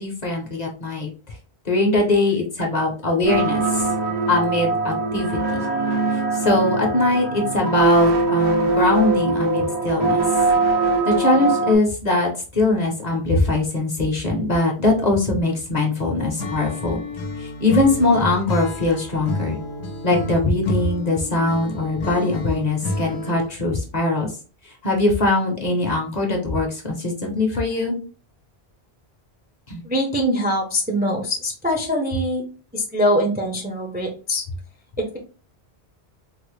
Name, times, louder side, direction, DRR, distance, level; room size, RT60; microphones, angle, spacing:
voice 1, 0.0-1.4 1.6-3.9 4.3-5.6 6.1-10.2 11.0-17.0 17.4-19.6 20.0-24.3 24.6-28.0 29.7-29.8, left 2 dB, 45° left, 1 dB, 0.8 m, -21 dB
sound 1, 3.2-11.8, right 3 dB, 75° right, 1.1 m, -21 dB
Acoustic guitar / Strum, 16.4-23.6, left 2 dB, 80° left, 1.0 m, -30 dB
voice 2, 29.8-32.4 32.7-34.4 35.0-35.2, equal, 10° right, 0 dB, 0.5 m, -23 dB
3.9 x 2.0 x 3.1 m, 0.37 s
omnidirectional pair, 1.1 m